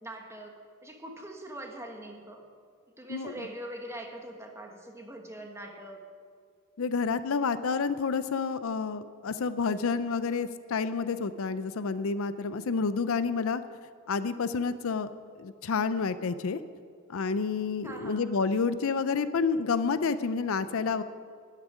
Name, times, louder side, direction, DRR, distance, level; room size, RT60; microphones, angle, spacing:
voice 1, 0.0-2.5 3.0-6.1 17.8-18.2, right 1 dB, 15° right, 1 dB, 1.5 m, -42 dB
voice 2, 6.8-13.6 14.1-15.1 15.4-16.6 17.1-21.0, left 5 dB, 65° left, 13 dB, 0.5 m, -29 dB
12.0 x 7.5 x 9.9 m, 2.1 s
head